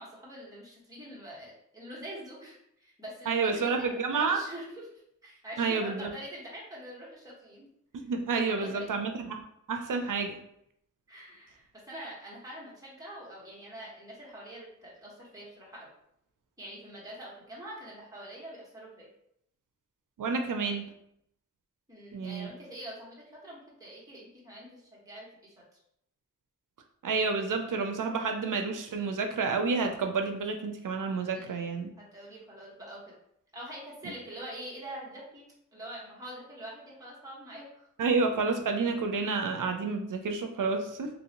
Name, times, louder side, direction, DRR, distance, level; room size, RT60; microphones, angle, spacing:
voice 1, 0.0-7.7 8.5-8.8 11.1-15.9 16.6-19.1 21.9-25.6 31.3-31.6 32.0-33.0 33.5-35.4 35.7-37.9, right 1 dB, 10° right, -6 dB, 1.3 m, -45 dB
voice 2, 3.3-4.4 5.6-6.1 7.9-9.4 9.7-10.4 20.2-20.9 22.1-22.5 27.0-31.9 38.0-41.1, right 4 dB, 85° right, 4 dB, 0.5 m, -29 dB
3.1 x 2.6 x 2.8 m, 0.74 s
wide cardioid pair, 65°, 31 cm